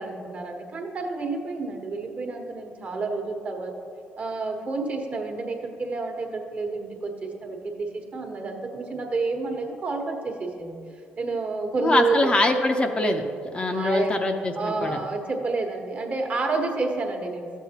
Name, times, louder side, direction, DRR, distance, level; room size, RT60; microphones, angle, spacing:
voice 1, 0.0-3.8 4.2-10.9 11.2-12.3 13.7-14.2 14.6-17.6, right 3 dB, 40° right, 2 dB, 1.3 m, -29 dB
voice 2, 11.8-13.2 13.5-15.0, left 2 dB, 25° left, 3 dB, 0.7 m, -23 dB
12.5 x 7.3 x 2.9 m, 2.3 s
cardioid pair, 90°, 4 cm